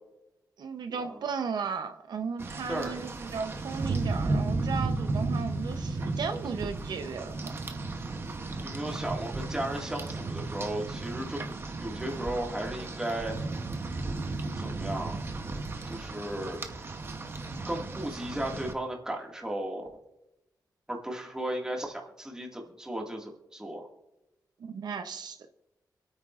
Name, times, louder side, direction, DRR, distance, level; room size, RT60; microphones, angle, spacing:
voice 1, 0.6-7.5 24.6-25.4, right 5 dB, 85° right, 7 dB, 0.8 m, -35 dB
Rain, 2.4-18.7, right 3 dB, 35° right, 0.9 m, -34 dB
voice 2, 2.7-3.0 8.6-13.3 14.6-15.2 15.9-16.6 17.7-19.9 20.9-23.9, right 1 dB, 10° right, -1 dB, 1.9 m, -35 dB
26.5 x 8.9 x 2.5 m, 0.93 s
wide cardioid pair, 165°, 7 cm